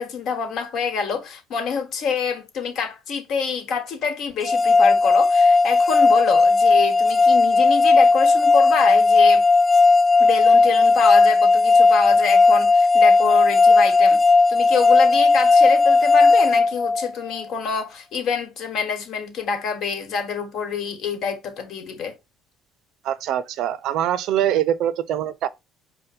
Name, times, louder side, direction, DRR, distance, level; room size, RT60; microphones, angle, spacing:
voice 1, 0.0-9.4 10.2-14.2 14.5-22.1, left 5 dB, 55° left, 1.4 m, -26 dB
sound 1, 4.4-17.4, left 3 dB, 15° left, 0.3 m, -15 dB
voice 2, 23.0-25.5, right 11 dB, 65° right, 0.4 m, -23 dB
5.1 x 2.1 x 4.2 m
cardioid pair, 120°, 0 cm